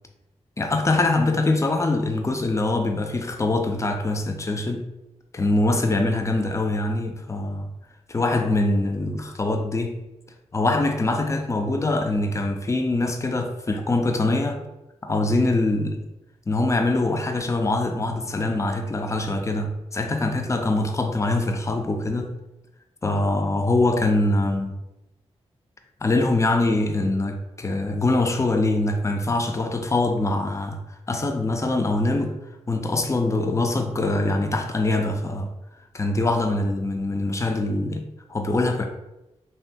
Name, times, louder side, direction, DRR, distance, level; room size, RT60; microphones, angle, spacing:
voice 1, 0.6-4.9 5.3-7.7 8.1-10.0 10.5-14.6 15.0-16.1 16.5-22.4 23.0-24.8 26.0-30.8 31.1-32.4 32.7-35.5 35.9-38.9, left 2 dB, 25° left, 4 dB, 0.4 m, -23 dB
2.8 x 2.2 x 2.6 m, 0.94 s
cardioid pair, 40°, 12 cm